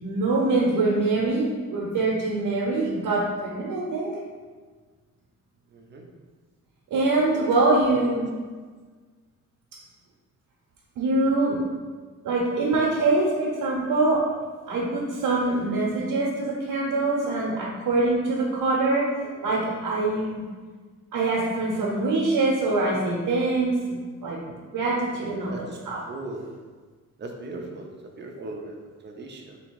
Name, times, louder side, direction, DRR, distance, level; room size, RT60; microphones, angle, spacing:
voice 1, 0.0-4.1 6.9-8.3 11.0-11.6 12.2-14.2 14.7-19.1 19.4-20.4 21.1-24.4 24.7-26.0 28.4-28.5, right 2 dB, 85° right, -4 dB, 0.8 m, -24 dB
voice 2, 5.7-6.0 19.2-19.8 25.1-25.6 26.1-26.4 27.2-29.6, right 2 dB, 35° right, 2 dB, 0.5 m, -39 dB
3.6 x 2.8 x 4.5 m, 1.5 s
wide cardioid pair, 155°, 32 cm